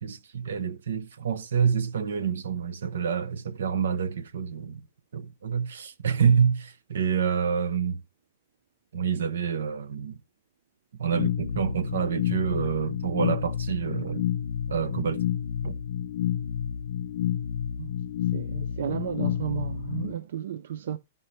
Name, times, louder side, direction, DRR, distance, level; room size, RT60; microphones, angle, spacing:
voice 1, 0.0-4.8 5.1-8.0 8.9-10.2 11.0-14.2 14.7-15.3 15.6-15.8, right 7 dB, 75° right, 0.8 m, -27 dB
sound 1, 11.1-20.1, left 10 dB, 55° left, 0.6 m, -30 dB
voice 2, 18.3-21.0, right 9 dB, 55° right, 0.4 m, -33 dB
13.5 x 5.5 x 3.1 m
hypercardioid pair, 180°, 0 cm